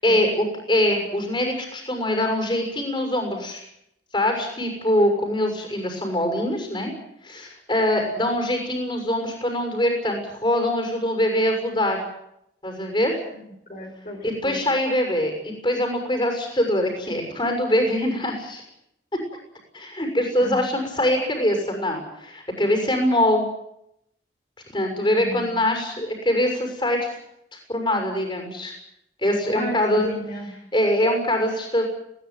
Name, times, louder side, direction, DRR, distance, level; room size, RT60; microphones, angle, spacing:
voice 1, 0.0-3.6 4.1-6.9 7.2-12.0 12.6-13.2 14.2-18.6 19.7-23.4 24.7-27.2 27.5-28.7 29.2-30.1 30.7-31.8, left 1 dB, 25° left, 3 dB, 6.5 m, -23 dB
voice 2, 13.7-14.6 20.4-20.7 25.2-25.5 29.5-30.6, equal, 45° left, -1 dB, 5.5 m, -32 dB
21.0 x 19.0 x 9.3 m, 0.79 s
head